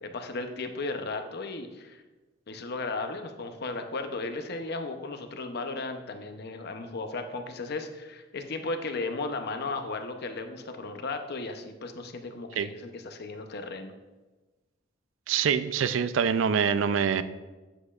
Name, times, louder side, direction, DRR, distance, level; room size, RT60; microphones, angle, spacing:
voice 1, 0.0-2.0 2.5-13.9, left 3 dB, 55° left, 6 dB, 0.7 m, -35 dB
voice 2, 15.3-17.2, right 7 dB, 85° right, 13 dB, 0.4 m, -25 dB
8.3 x 7.7 x 2.4 m, 1.2 s
head